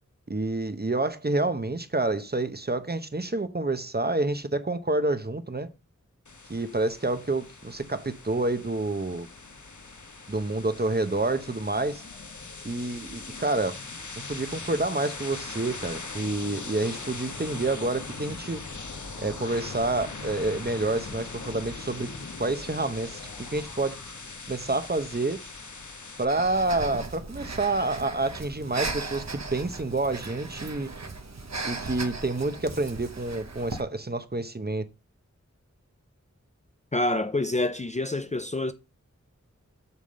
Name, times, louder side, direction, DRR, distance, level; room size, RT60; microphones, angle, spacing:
voice 1, 0.3-5.7 6.5-9.3 10.3-12.0 12.6-13.8 14.2-18.6 19.2-22.1 22.4-23.2 23.5-24.0 24.5-25.4 26.2-30.9 31.6-34.9, right 2 dB, 35° right, 0.9 m, -28 dB
sound 1, 6.3-26.3, left 3 dB, 75° left, 1.3 m, -40 dB
Breathing, 26.3-33.8, right 3 dB, 60° right, 1.1 m, -37 dB
voice 2, 36.9-38.7, left 2 dB, 25° left, 0.5 m, -27 dB
8.3 x 3.6 x 6.7 m
wide cardioid pair, 45°, 30 cm